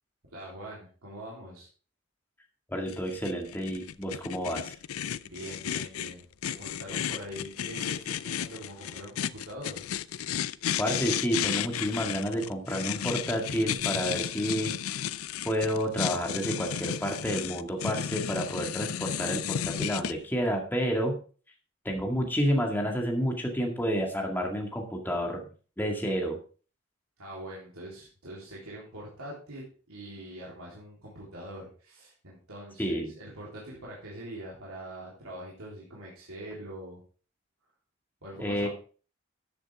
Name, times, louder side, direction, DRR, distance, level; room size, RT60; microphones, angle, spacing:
voice 1, 0.3-1.7 5.2-9.8 27.2-37.0 38.2-38.7, right 1 dB, 85° right, -5 dB, 3.7 m, -43 dB
voice 2, 2.7-4.7 10.8-15.1 15.4-21.2 21.8-25.5 25.8-26.4 32.8-33.1 38.4-38.7, equal, 10° left, 1 dB, 2.0 m, -30 dB
sound 1, 2.9-20.1, left 9 dB, 80° left, 0.5 m, -33 dB
13.5 x 8.2 x 3.6 m, 0.38 s
head